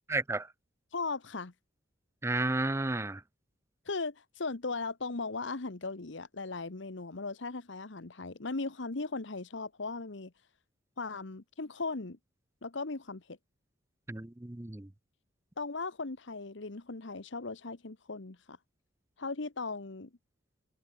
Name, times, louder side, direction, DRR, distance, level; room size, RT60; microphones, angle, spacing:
voice 1, 0.1-0.5 2.2-3.2 14.1-14.9, right 2 dB, 15° right, 0.5 m, -32 dB
voice 2, 0.9-1.5 3.8-10.3 11.0-12.2 12.6-13.4 15.6-18.6 19.2-20.1, left 3 dB, 65° left, 1.1 m, -38 dB
head